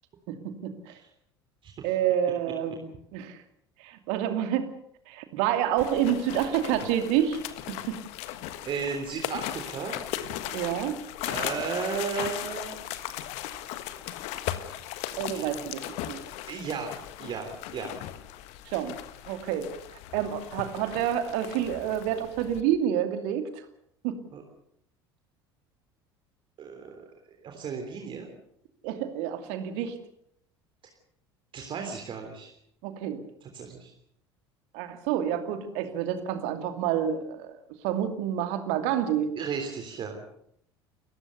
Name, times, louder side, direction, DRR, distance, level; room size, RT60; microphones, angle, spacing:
voice 1, 0.3-0.9 1.8-3.4 3.8-4.7 5.1-7.4 7.7-8.0 10.5-11.0 15.2-16.2 18.7-19.0 19.3-19.7 20.1-23.5 24.0-24.2 28.8-30.0 32.8-33.2 34.7-37.5 37.8-39.3, right 10 dB, 55° right, 8 dB, 2.6 m, -28 dB
sound 1, 5.8-22.6, left 13 dB, 55° left, 1.5 m, -37 dB
voice 2, 8.6-10.0 11.2-12.8 15.1-15.7 16.5-18.0 24.3-24.4 26.6-27.0 27.4-28.3 31.5-32.5 33.4-33.9 39.3-40.1, right 5 dB, 40° right, 3 dB, 3.4 m, -35 dB
29.0 x 15.0 x 6.9 m, 0.70 s
figure-of-eight pair, 65°, 13 cm